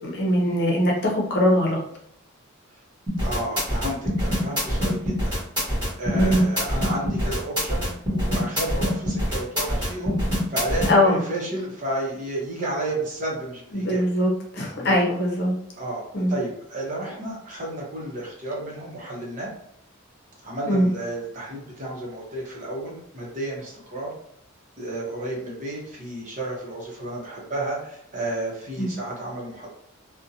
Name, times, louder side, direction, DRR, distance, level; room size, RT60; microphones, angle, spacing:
voice 1, 0.0-1.8 6.1-6.4 10.9-11.2 13.7-15.5 16.1-16.3 20.7-20.9 28.8-28.9, left 1 dB, 55° left, -1 dB, 0.7 m, -21 dB
sound 1, 3.1-10.9, equal, 20° right, 1.3 m, -24 dB
voice 2, 3.2-5.3 6.0-10.2 10.5-14.0 14.8-15.0 15.8-16.0 16.3-19.5 20.4-24.1 24.8-29.7, right 1 dB, 40° right, -3 dB, 0.8 m, -32 dB
2.5 x 2.1 x 2.7 m, 0.71 s
head